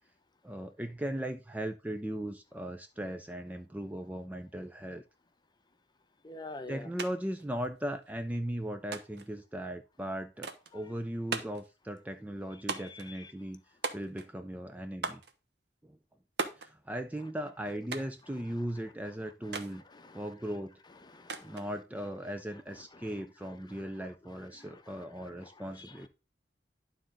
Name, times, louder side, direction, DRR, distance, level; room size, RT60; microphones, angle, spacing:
voice 1, 0.4-5.0 6.7-13.6 13.9-15.2 15.8-16.0 16.6-19.8 20.1-20.8 21.4-26.1, right 1 dB, 10° right, 0.4 m, -38 dB
voice 2, 6.2-6.9 12.8-13.3 19.9-20.2 21.1-21.6 24.6-25.3 25.8-25.9, left 2 dB, 25° left, 0.7 m, -47 dB
sound 1, 7.0-7.1 7.4-8.1 8.9-9.3 10.4-10.7 11.3-11.7 12.7-13.1 13.8-14.4 15.0-15.3 16.4-16.7 17.9-18.2 19.5-19.7 21.3-21.7, right 4 dB, 70° right, 1.0 m, -37 dB
11.5 x 3.9 x 3.8 m
head